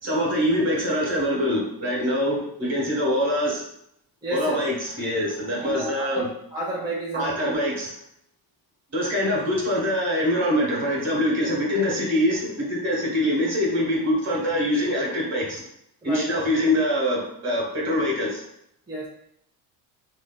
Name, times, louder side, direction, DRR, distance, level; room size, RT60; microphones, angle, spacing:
voice 1, 0.0-3.6 4.3-6.3 7.1-7.9 8.9-15.6 16.0-18.4, equal, 40° right, -3 dB, 1.4 m, -24 dB
voice 2, 4.2-4.6 5.6-6.2 6.5-7.7 16.0-16.5 18.9-19.1, right 1 dB, 10° right, -6 dB, 0.7 m, -31 dB
4.6 x 2.7 x 2.2 m, 0.74 s
cardioid pair, 140°, 40 cm